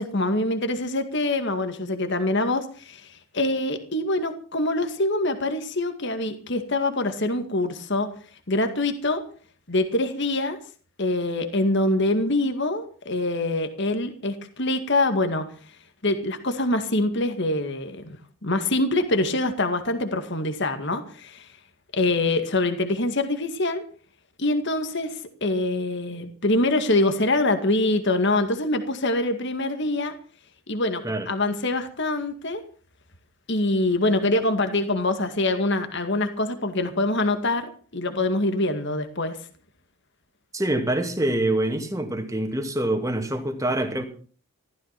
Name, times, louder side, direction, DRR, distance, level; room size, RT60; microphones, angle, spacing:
voice 1, 0.0-8.1 8.5-9.2 9.7-10.6 11.0-15.5 16.0-18.2 18.4-21.5 21.9-23.8 24.4-30.2 30.7-32.6 33.5-39.4, left 2 dB, 55° left, 2.1 m, -24 dB
voice 2, 40.5-44.0, right 1 dB, 15° right, 2.3 m, -25 dB
15.5 x 14.0 x 5.9 m
head